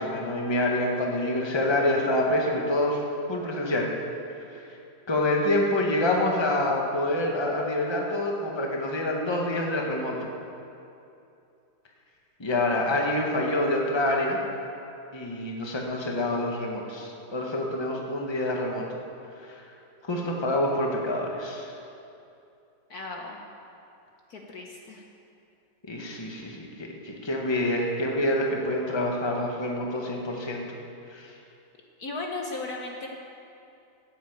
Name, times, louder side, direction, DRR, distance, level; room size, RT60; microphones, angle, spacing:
voice 1, 0.0-3.0 3.3-3.9 4.5-4.6 5.1-10.2 12.4-14.4 15.1-18.9 20.0-21.7 25.9-30.8 31.1-31.3, left 1 dB, 15° left, 0 dB, 1.4 m, -27 dB
voice 2, 22.9-23.4 24.3-25.0 32.0-33.1, left 3 dB, 55° left, 1 dB, 1.5 m, -36 dB
15.0 x 8.3 x 8.0 m, 2.7 s
omnidirectional pair, 2.1 m